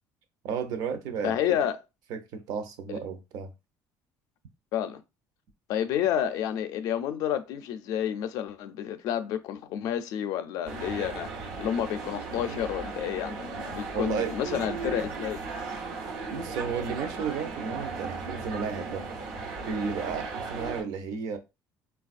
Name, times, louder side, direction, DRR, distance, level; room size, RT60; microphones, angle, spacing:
voice 1, 0.4-1.4 2.1-3.5 13.9-14.3 16.3-19.0 19.6-21.4, right 6 dB, 65° right, 0.6 m, -33 dB
voice 2, 1.2-1.8 2.9-3.0 4.7-5.0 5.7-11.3 11.6-15.4, left 10 dB, 60° left, 0.4 m, -30 dB
sound 1, 10.6-20.8, right 4 dB, 90° right, 0.9 m, -36 dB
4.0 x 2.3 x 2.4 m
cardioid pair, 175°, 7 cm